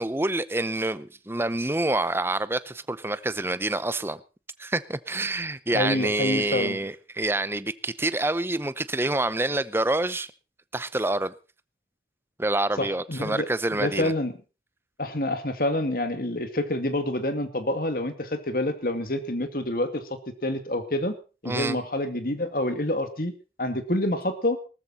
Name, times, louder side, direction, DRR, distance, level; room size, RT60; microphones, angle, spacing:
voice 1, 0.0-4.2 4.6-10.3 10.7-11.3 12.4-14.1 21.5-21.8, right 2 dB, 15° right, 0.7 m, -27 dB
voice 2, 5.7-6.8 12.8-13.5 13.8-14.3 15.0-21.1 21.4-23.3 23.6-24.6, left 1 dB, 55° left, 2.2 m, -27 dB
18.5 x 13.5 x 4.2 m
head